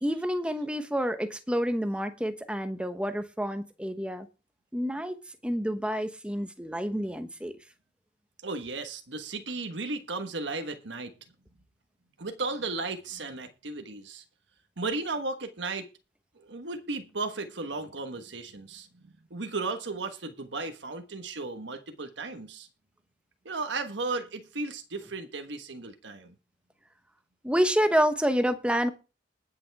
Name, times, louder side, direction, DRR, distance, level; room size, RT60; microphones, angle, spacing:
voice 1, 0.0-4.3 4.7-5.1 5.4-7.6 27.4-28.9, equal, 5° right, 1.0 m, -28 dB
voice 2, 8.4-11.1 12.2-14.2 14.8-15.9 16.4-18.9 19.3-22.7 23.4-26.3, right 3 dB, 80° right, 1.3 m, -35 dB
20.5 x 7.1 x 3.5 m
head